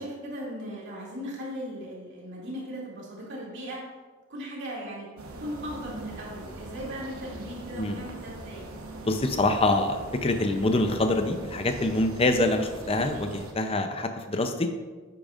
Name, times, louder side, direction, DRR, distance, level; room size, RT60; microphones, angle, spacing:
voice 1, 0.0-3.8 4.3-8.7, equal, 55° right, -4 dB, 2.5 m, -38 dB
sound 1, 5.2-13.5, right 2 dB, 80° right, 1.1 m, -42 dB
voice 2, 9.0-14.7, left 2 dB, 25° left, 6 dB, 0.5 m, -25 dB
10.5 x 8.6 x 2.5 m, 1.4 s
head